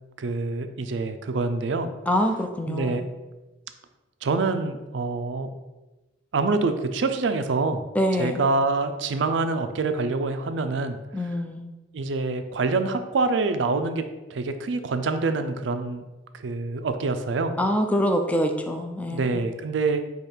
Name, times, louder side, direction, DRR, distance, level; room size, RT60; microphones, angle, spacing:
voice 1, 0.2-1.9 2.7-3.0 4.2-5.5 6.3-7.8 8.1-11.0 11.9-14.0 14.3-16.0 16.4-17.5 19.1-20.0, right 3 dB, 80° right, 9 dB, 0.4 m, -26 dB
voice 2, 2.1-3.0 8.0-8.4 11.1-11.7 17.6-19.4, equal, 10° left, 4 dB, 0.4 m, -25 dB
4.9 x 2.4 x 4.4 m, 1.1 s
head